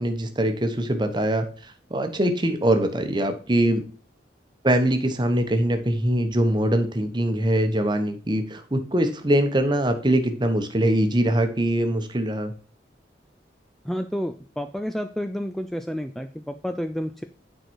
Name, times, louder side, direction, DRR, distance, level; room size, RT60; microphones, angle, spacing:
voice 1, 0.0-3.8 4.6-12.5, right 1 dB, 25° right, 7 dB, 1.0 m, -23 dB
voice 2, 13.8-17.2, equal, ahead, 8 dB, 0.3 m, -30 dB
9.0 x 4.7 x 4.6 m, 0.42 s
head